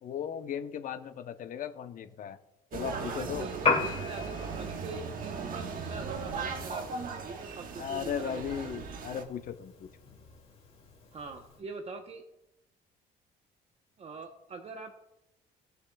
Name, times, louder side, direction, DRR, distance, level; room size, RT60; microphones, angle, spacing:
voice 1, 0.0-2.4 2.7-3.5 7.8-9.9, left 8 dB, 50° left, 9 dB, 0.8 m, -37 dB
sound 1, 2.7-9.2, right 5 dB, 55° right, 1.3 m, -38 dB
voice 2, 2.9-8.7 11.1-12.2 14.0-14.9, right 4 dB, 35° right, 5 dB, 0.9 m, -43 dB
Piano, 3.5-11.6, left 4 dB, 35° left, 2.4 m, -37 dB
20.0 x 6.7 x 2.3 m, 0.92 s
cardioid pair, 110°, 17 cm